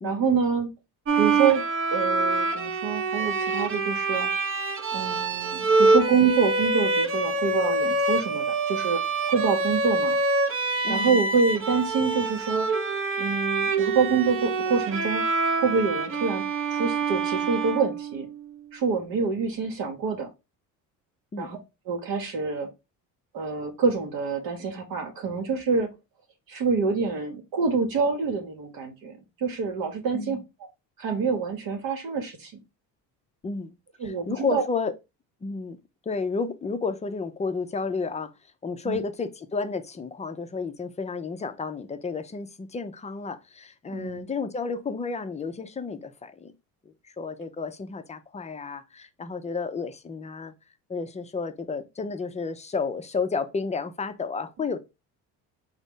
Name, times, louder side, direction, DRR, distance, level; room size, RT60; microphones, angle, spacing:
voice 1, 0.0-0.7 1.1-1.6 1.9-4.3 4.9-9.0 9.3-10.2 10.9-12.7 13.2-15.2 15.6-18.3 18.7-20.3 21.4-21.6 21.9-22.7 23.3-25.9 26.5-30.4 31.0-32.5 34.0-34.6 38.8-39.0 43.9-44.3, right 5 dB, 65° right, 1.0 m, -26 dB
Bowed string instrument, 1.1-18.5, right 3 dB, 35° right, 0.6 m, -26 dB
voice 2, 10.8-11.2 21.3-21.5 30.1-30.4 33.4-33.8 34.0-34.9 35.4-35.8 36.1-38.3 38.6-46.5 46.9-50.5 50.9-54.8, left 4 dB, 20° left, 0.4 m, -31 dB
3.9 x 2.1 x 3.6 m
cardioid pair, 95°, 37 cm